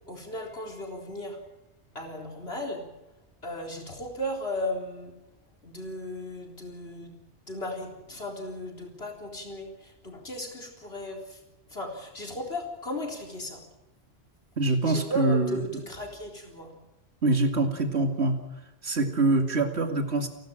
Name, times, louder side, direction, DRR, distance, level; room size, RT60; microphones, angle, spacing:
voice 1, 0.1-1.5 1.9-2.9 3.4-5.2 5.6-7.2 7.5-11.4 11.7-13.6 14.7-16.7, left 1 dB, 70° left, 1 dB, 4.4 m, -36 dB
voice 2, 14.6-15.8 17.2-18.4 18.8-20.3, right 2 dB, 85° right, 5 dB, 2.7 m, -25 dB
29.5 x 12.0 x 8.9 m, 0.98 s
omnidirectional pair, 1.1 m